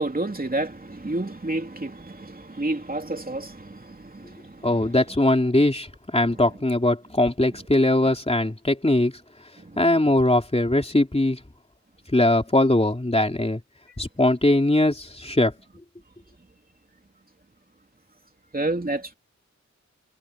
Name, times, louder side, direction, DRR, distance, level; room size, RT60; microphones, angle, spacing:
voice 1, 0.0-4.8 9.6-9.8 18.5-19.1, right 2 dB, 30° right, 3.0 m, -30 dB
voice 2, 4.6-9.1 9.8-11.4 12.1-13.6 14.0-15.5, left 1 dB, 20° left, 3.2 m, -21 dB
wide cardioid pair, 70°, 29 cm